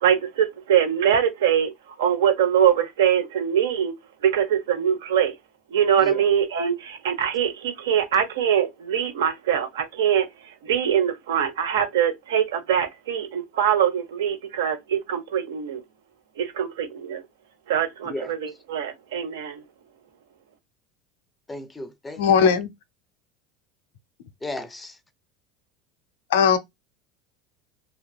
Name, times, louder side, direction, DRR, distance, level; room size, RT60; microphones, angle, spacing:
voice 1, 0.0-1.7 2.0-3.9 4.2-5.3 5.7-10.3 10.6-15.8 16.4-17.2 17.7-19.6, right 9 dB, 80° right, 0.6 m, -23 dB
voice 2, 21.5-22.5 24.4-25.0, left 2 dB, 15° left, 0.5 m, -35 dB
voice 3, 22.2-22.7 26.3-26.6, left 7 dB, 80° left, 0.5 m, -18 dB
2.8 x 2.2 x 2.2 m
hypercardioid pair, 85°, 0 cm